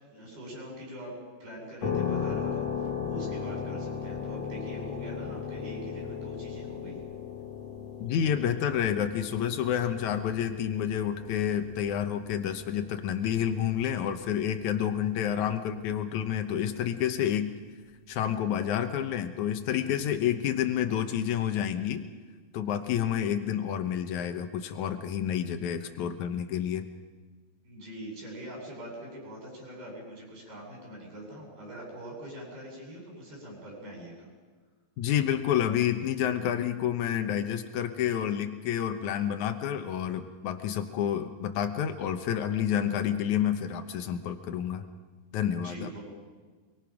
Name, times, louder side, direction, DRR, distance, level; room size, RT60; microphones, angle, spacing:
voice 1, 0.1-1.1 1.4-7.0 27.6-34.3 45.5-46.0, right 1 dB, 65° right, -2 dB, 10.0 m, -43 dB
sound 1, 1.8-16.5, left 7 dB, 45° left, 2.8 m, -37 dB
voice 2, 8.0-17.6 18.1-22.1 22.5-26.9 35.0-44.9 45.3-45.9, left 9 dB, 80° left, 7 dB, 1.7 m, -29 dB
26.5 x 23.5 x 6.0 m, 1.4 s
omnidirectional pair, 4.8 m